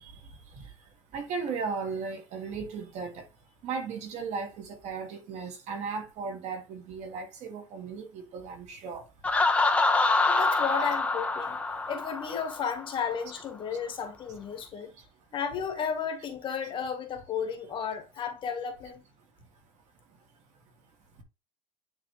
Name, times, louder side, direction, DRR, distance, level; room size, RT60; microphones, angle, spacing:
voice 1, 1.1-3.2 3.6-9.0, right 5 dB, 45° right, 1.7 m, -36 dB
Laughter, 9.2-12.9, left 3 dB, 5° left, 0.6 m, -26 dB
voice 2, 10.3-11.6 11.9-14.9 15.3-19.0, left 7 dB, 30° left, 1.3 m, -33 dB
9.8 x 3.4 x 3.1 m
cardioid pair, 155°, 17 cm